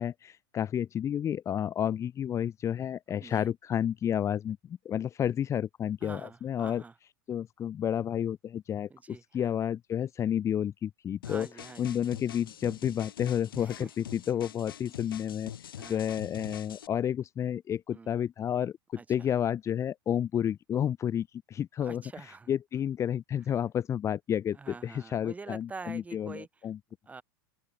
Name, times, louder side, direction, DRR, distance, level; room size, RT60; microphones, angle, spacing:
voice 1, 0.0-6.8 7.3-11.5 11.8-22.0 22.5-26.8, left 9 dB, 25° left, 1.0 m, -31 dB
voice 2, 6.0-7.0 8.9-9.5 11.2-12.0 13.6-13.9 15.8-16.1 17.9-18.2 18.9-19.3 21.8-22.5 24.5-26.5 27.1-27.2, right 4 dB, 15° right, 2.9 m, -46 dB
sound 1, 11.2-16.9, left 10 dB, 90° left, 2.5 m, -45 dB
open air
hypercardioid pair, 120°, 11 cm